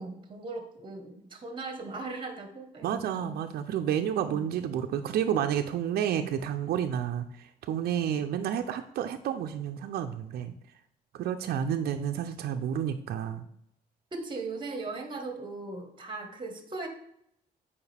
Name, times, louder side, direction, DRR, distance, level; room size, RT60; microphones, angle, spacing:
voice 1, 0.0-3.4 4.1-4.4 14.1-16.9, right 3 dB, 30° right, 6 dB, 1.1 m, -39 dB
voice 2, 2.8-10.5 11.1-13.4, right 9 dB, 70° right, 6 dB, 0.5 m, -30 dB
7.1 x 4.9 x 3.4 m, 0.73 s
cardioid pair, 120°, 17 cm